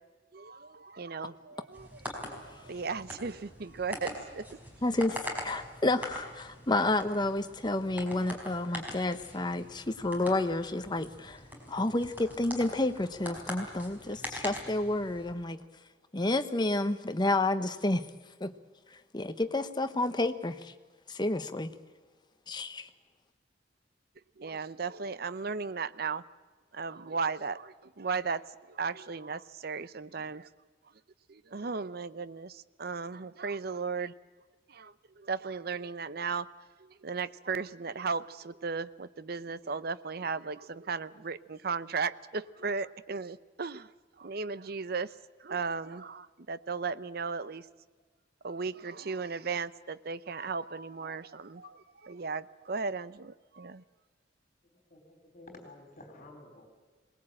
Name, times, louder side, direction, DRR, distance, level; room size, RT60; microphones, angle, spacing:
voice 1, 0.3-1.9 2.2-4.5 24.4-26.2 26.7-28.4 28.7-30.5 31.3-34.1 34.7-36.5 37.0-43.9 44.2-45.1 45.4-47.6 48.4-51.7 52.0-53.8, right 5 dB, 55° right, 15 dB, 0.7 m, -36 dB
sound 1, 1.7-15.3, equal, 10° right, 4.7 m, -43 dB
voice 2, 4.8-11.4 11.7-15.6 16.1-18.1 18.4-18.5 19.1-20.7 21.1-21.7 22.5-22.9, left 2 dB, 25° left, 10 dB, 1.0 m, -30 dB
voice 3, 54.9-56.7, left 2 dB, 40° left, 3 dB, 4.0 m, -51 dB
22.5 x 19.5 x 8.8 m, 1.4 s
head